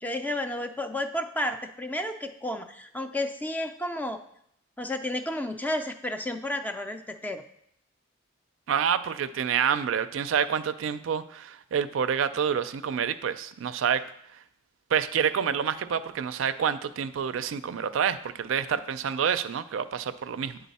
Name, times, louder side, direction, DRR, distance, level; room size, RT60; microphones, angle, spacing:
voice 1, 0.0-4.2 4.8-7.4, left 1 dB, 10° left, 7 dB, 0.3 m, -32 dB
voice 2, 8.7-14.0 14.9-20.6, right 7 dB, 75° right, 12 dB, 0.4 m, -28 dB
9.2 x 3.9 x 4.1 m, 0.72 s
head